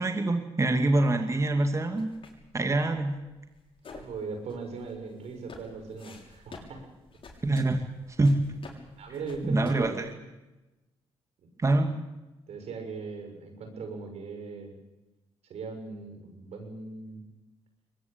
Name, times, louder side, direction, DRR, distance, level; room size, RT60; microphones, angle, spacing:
voice 1, 0.0-2.1 2.5-3.2 7.4-7.8 8.2-8.4 9.4-10.1 11.6-12.0, right 2 dB, 25° right, 5 dB, 2.5 m, -25 dB
sound 1, 1.9-10.1, left 4 dB, 50° left, 6.8 m, -50 dB
voice 2, 3.9-6.9 9.0-10.2 12.5-14.7 15.5-17.2, right 4 dB, 75° right, 5 dB, 6.8 m, -39 dB
23.0 x 20.0 x 8.9 m, 1.1 s
cardioid pair, 70°, 11 cm